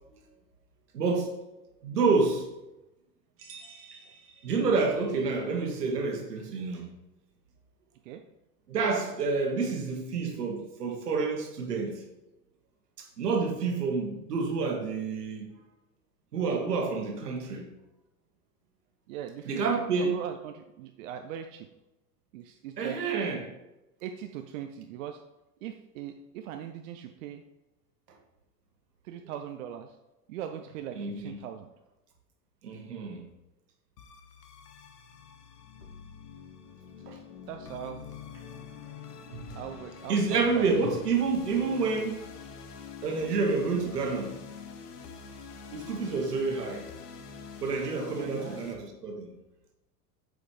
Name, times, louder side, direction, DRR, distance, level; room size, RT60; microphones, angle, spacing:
voice 1, 0.9-1.3 1.8-2.5 4.4-6.9 8.7-12.0 13.0-15.5 16.3-17.7 19.5-20.2 22.8-23.5 30.9-31.3 32.6-33.2 37.1-37.2 39.3-39.4 40.1-42.2 43.0-44.4 45.7-46.9 47.6-49.3, right 4 dB, 75° right, 1.4 m, -28 dB
sound 1, 3.4-5.2, right 5 dB, 25° right, 1.3 m, -51 dB
voice 2, 19.1-21.7 22.3-23.0 24.0-25.2 25.6-27.4 29.0-30.0 30.3-31.7 37.5-38.0 39.5-40.7 47.7-48.6, right 10 dB, 55° right, 0.6 m, -40 dB
sound 2, 34.0-48.7, left 6 dB, 75° left, 0.9 m, -46 dB
8.1 x 4.9 x 3.2 m
figure-of-eight pair, 80°, 48 cm